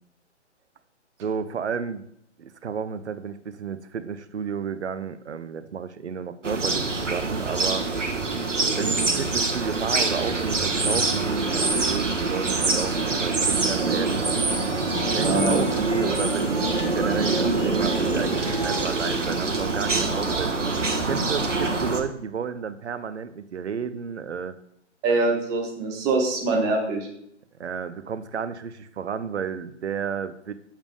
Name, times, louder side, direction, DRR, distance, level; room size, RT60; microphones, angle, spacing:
voice 1, 1.2-2.1 2.4-7.9 8.8-14.2 15.1-20.6 21.1-24.5 27.6-30.5, right 6 dB, 65° right, 13 dB, 0.7 m, -32 dB
sound 1, 6.4-22.0, right 3 dB, 85° right, 1.3 m, -25 dB
sound 2, 14.6-19.6, left 2 dB, 55° left, 3.4 m, -36 dB
voice 2, 15.2-15.6 25.0-27.1, right 3 dB, 10° right, 1 dB, 0.6 m, -24 dB
7.3 x 6.9 x 3.4 m, 0.72 s
figure-of-eight pair, 130°, 36 cm